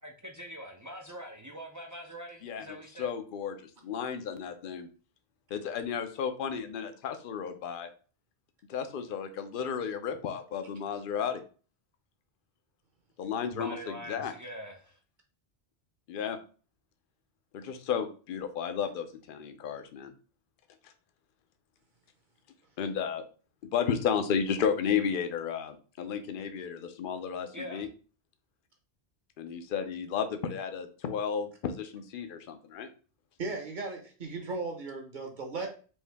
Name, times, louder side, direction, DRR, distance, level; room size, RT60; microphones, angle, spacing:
voice 1, 0.0-3.1 13.5-15.0 27.5-27.9, equal, 30° right, 2 dB, 0.4 m, -43 dB
voice 2, 2.4-4.9 5.5-7.9 8.7-11.4 13.2-13.8 14.1-14.3 16.1-16.4 17.5-20.1 20.8-20.9 22.8-23.2 23.7-27.9 29.4-32.9, left 7 dB, 60° left, 8 dB, 0.7 m, -33 dB
voice 3, 33.4-35.7, right 3 dB, 50° right, 2 dB, 1.1 m, -36 dB
4.5 x 2.7 x 3.4 m, 0.39 s
omnidirectional pair, 1.1 m